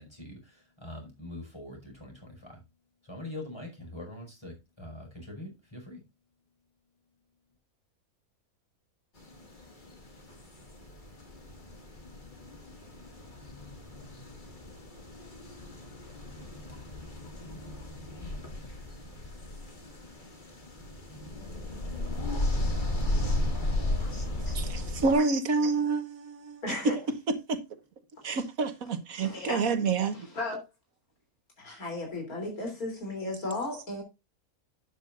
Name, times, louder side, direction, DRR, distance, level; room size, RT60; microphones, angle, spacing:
voice 1, 0.0-2.6 3.0-6.0, left 1 dB, 20° left, 5.4 m, -43 dB
sound 1, 9.2-25.1, left 1 dB, 35° left, 2.2 m, -35 dB
voice 2, 24.0-24.6 26.6-27.0 29.2-29.6 30.1-30.6 31.6-34.0, left 2 dB, 85° left, 3.7 m, -35 dB
voice 3, 24.5-26.9 27.3-27.6 28.2-30.3, right 4 dB, 75° right, 1.7 m, -28 dB
11.5 x 9.0 x 2.5 m
omnidirectional pair, 1.5 m